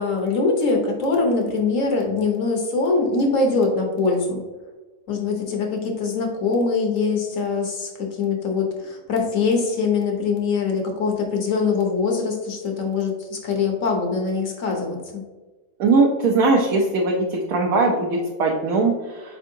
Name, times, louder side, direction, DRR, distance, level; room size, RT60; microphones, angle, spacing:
voice 1, 0.0-4.4 5.1-15.2, left 4 dB, 60° left, 2 dB, 1.1 m, -23 dB
voice 2, 15.8-19.4, right 3 dB, 70° right, 0 dB, 1.0 m, -20 dB
4.5 x 3.7 x 2.6 m, 1.2 s
omnidirectional pair, 1.7 m